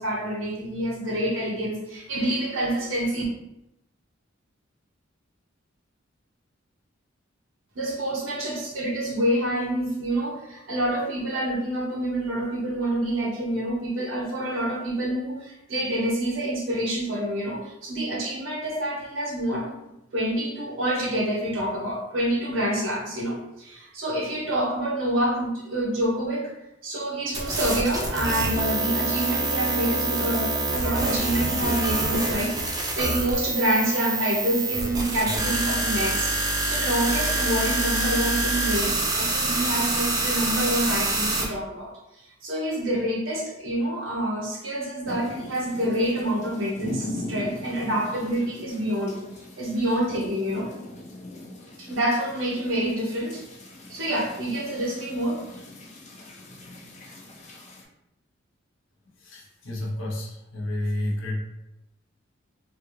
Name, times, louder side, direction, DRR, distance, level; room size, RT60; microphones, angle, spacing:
voice 1, 0.0-3.2 7.7-19.7 20.1-26.5 26.8-36.3 36.6-41.9 42.4-49.2 49.6-50.7 51.8-53.4 53.9-55.4, right 1 dB, 90° right, -3 dB, 1.1 m, -27 dB
sound 1, 27.3-41.5, right 2 dB, 20° right, 0.5 m, -26 dB
sound 2, 45.0-57.8, left 1 dB, 40° left, 0.6 m, -40 dB
voice 2, 59.2-61.4, left 1 dB, 80° left, -2 dB, 0.9 m, -30 dB
3.3 x 2.4 x 3.2 m, 0.87 s
head